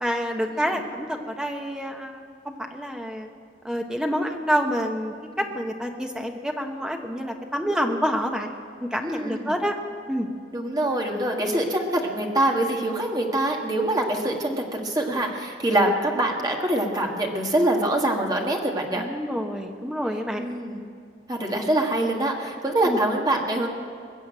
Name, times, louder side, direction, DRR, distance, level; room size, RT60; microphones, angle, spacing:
voice 1, 0.0-2.1 2.5-3.3 3.6-8.5 8.9-9.7 10.1-10.3 19.0-20.4 22.9-23.0, equal, 5° right, 3 dB, 1.0 m, -27 dB
voice 2, 9.0-9.5 10.5-19.1 20.4-20.8 21.3-23.7, right 1 dB, 20° right, 1 dB, 1.7 m, -24 dB
21.5 x 7.2 x 8.9 m, 2.2 s
head